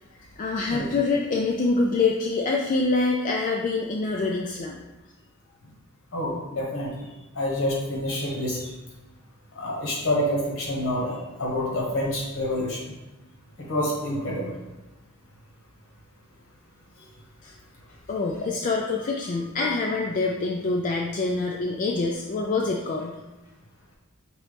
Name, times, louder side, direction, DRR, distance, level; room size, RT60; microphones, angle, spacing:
voice 1, 0.4-4.8 17.4-17.5 18.1-23.2, left 3 dB, 35° left, 0 dB, 0.3 m, -25 dB
voice 2, 6.1-7.1 7.3-8.7 9.6-12.9 13.6-14.5 19.6-19.8, left 1 dB, 65° left, -2 dB, 1.2 m, -28 dB
5.2 x 3.0 x 3.3 m, 1.0 s
head